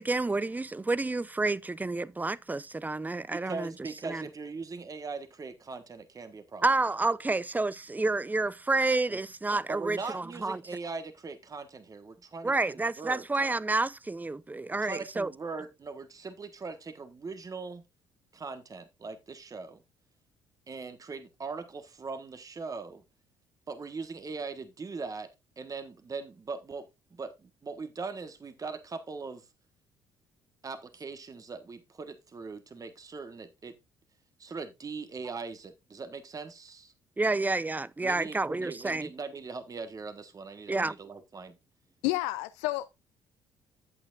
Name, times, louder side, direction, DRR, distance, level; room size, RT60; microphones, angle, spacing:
voice 1, 0.0-3.7 4.0-4.3 6.6-10.6 12.4-15.3 37.2-39.1 40.7-40.9, right 3 dB, 15° right, 0.6 m, -29 dB
voice 2, 3.3-6.6 9.1-9.2 9.7-13.2 14.7-17.8 18.3-19.8 20.7-23.0 23.7-25.3 25.6-26.9 27.1-29.5 30.6-33.8 34.4-36.9 38.0-41.6, right 4 dB, 35° right, 1.3 m, -40 dB
voice 3, 42.0-42.9, left 18 dB, 75° left, 0.4 m, -30 dB
10.5 x 8.5 x 2.5 m
hypercardioid pair, 55°, 11 cm